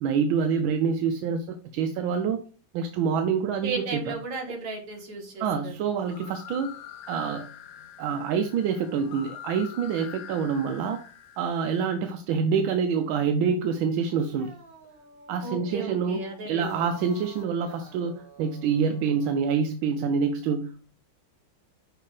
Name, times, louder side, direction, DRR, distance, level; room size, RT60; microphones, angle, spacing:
voice 1, 0.0-2.4 2.7-4.1 5.4-6.8 7.1-7.5 8.0-11.0 11.4-14.5 15.3-18.1 18.4-20.8, right 6 dB, 85° right, 6 dB, 1.4 m, -26 dB
voice 2, 3.6-5.7 15.4-16.9, right 4 dB, 65° right, 1 dB, 2.1 m, -35 dB
sound 1, 6.0-11.8, left 10 dB, 90° left, 0.7 m, -45 dB
sound 2, 14.0-19.5, right 2 dB, 40° right, 0.9 m, -50 dB
6.3 x 3.4 x 4.8 m, 0.38 s
omnidirectional pair, 2.1 m